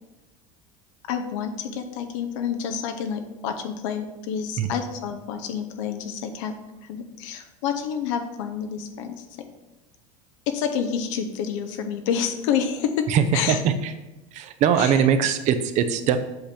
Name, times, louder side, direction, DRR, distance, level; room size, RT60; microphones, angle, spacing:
voice 1, 1.1-6.5 6.8-9.3 10.5-13.6 14.8-15.0, left 7 dB, 80° left, 6 dB, 0.7 m, -28 dB
voice 2, 13.1-13.9 14.3-16.2, right 8 dB, 50° right, 10 dB, 0.6 m, -21 dB
7.8 x 3.4 x 4.3 m, 1.0 s
supercardioid pair, 125°, 16 cm